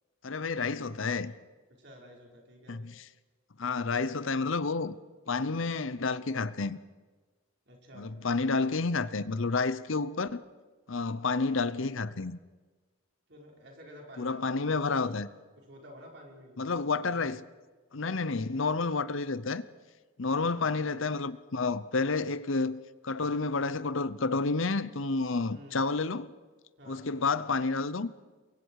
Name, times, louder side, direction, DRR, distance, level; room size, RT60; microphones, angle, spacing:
voice 1, 0.2-1.3 2.7-3.0 3.6-4.9 5.3-6.8 7.9-10.4 10.9-12.4 14.2-15.3 16.6-17.4 17.9-19.6 20.2-26.3 26.9-28.1, left 4 dB, 70° left, 0.8 m, -30 dB
voice 2, 1.8-2.8 7.7-8.1 13.3-15.0 15.7-17.3 25.5-25.8 26.8-27.1, equal, 55° right, 5.2 m, -51 dB
29.0 x 23.0 x 4.9 m
head